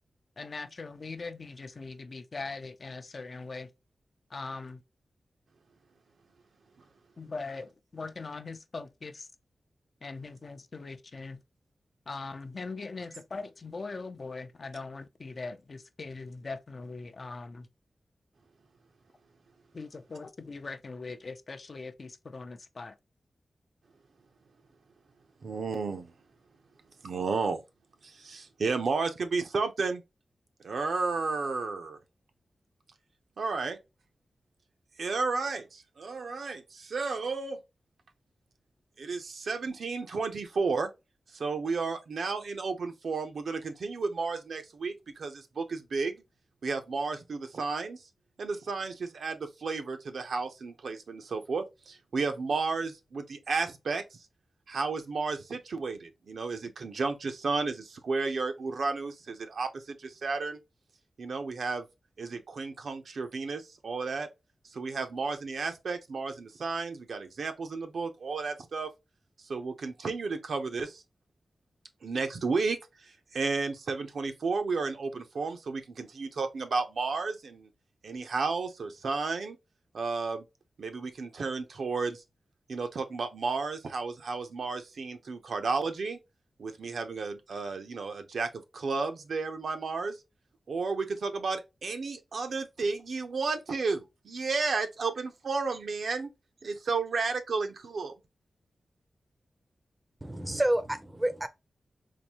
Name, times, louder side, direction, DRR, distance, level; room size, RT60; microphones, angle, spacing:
voice 1, 0.4-3.7 4.3-4.8 7.2-9.3 10.0-11.4 12.1-17.7 19.7-23.0, left 3 dB, 50° left, 0.5 m, -41 dB
voice 2, 25.4-26.1 27.0-27.6 28.0-30.0 30.6-32.0 33.4-33.8 35.0-37.6 39.0-40.9 41.3-46.2 46.6-48.0 48.4-54.0 54.7-60.6 61.2-61.9 62.2-64.3 64.7-68.9 69.5-71.0 72.0-72.8 73.0-77.7 78.0-79.6 79.9-80.4 80.8-82.2 82.7-86.2 86.6-90.2 90.7-96.3 96.6-98.1, right 4 dB, 75° right, 0.8 m, -32 dB
voice 3, 100.2-101.5, right 1 dB, 15° right, 0.6 m, -29 dB
3.9 x 2.6 x 2.9 m
wide cardioid pair, 120°, 0 cm